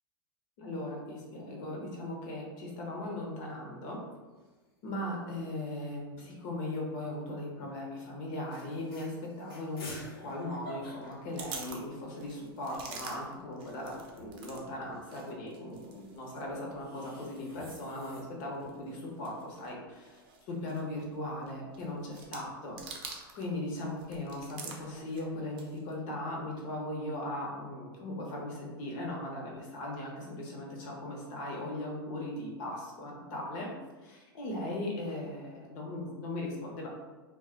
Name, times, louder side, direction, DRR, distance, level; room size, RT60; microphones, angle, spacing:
voice 1, 0.6-4.0 4.8-9.9 10.2-20.2 20.5-23.0 23.3-33.7 34.0-36.9, left 1 dB, 55° left, -2 dB, 1.0 m, -38 dB
sound 1, 2.8-3.5 3.9-4.0 4.2-4.8 5.7-6.9 7.5-7.8 8.2-8.3 8.5-12.1 12.5-12.6 12.8-15.1 16.3-18.2, equal, 80° left, 1.0 m, -51 dB
sound 2, 11.0-14.6 14.9-23.5 23.8-25.9, right 5 dB, 40° right, 0.6 m, -48 dB
2.4 x 2.3 x 3.7 m, 1.3 s
hypercardioid pair, 110°, 12 cm